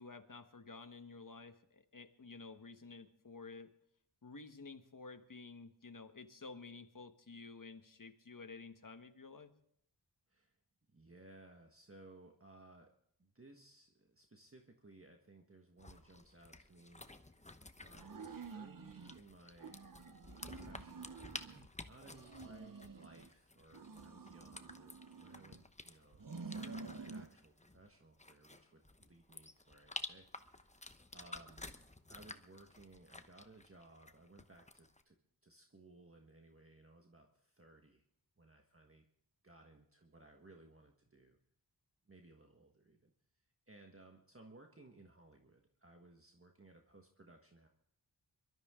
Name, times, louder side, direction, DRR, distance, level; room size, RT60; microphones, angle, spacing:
voice 1, 0.0-3.7 4.2-9.5, left 4 dB, 45° left, 7 dB, 1.4 m, -52 dB
voice 2, 10.9-12.9 13.2-17.1 17.8-19.8 20.4-31.7 32.1-38.0 38.4-39.1 39.4-41.4 42.0-43.1 43.7-47.7, right 2 dB, 30° right, 3 dB, 1.5 m, -61 dB
sound 1, 15.8-35.0, left 2 dB, 15° left, 0.9 m, -52 dB
sound 2, 17.9-19.2 19.6-21.7 22.0-23.3 23.7-25.6 26.1-27.3, right 4 dB, 50° right, 0.9 m, -50 dB
23.5 x 13.0 x 3.7 m, 0.70 s
wide cardioid pair, 50°, 43 cm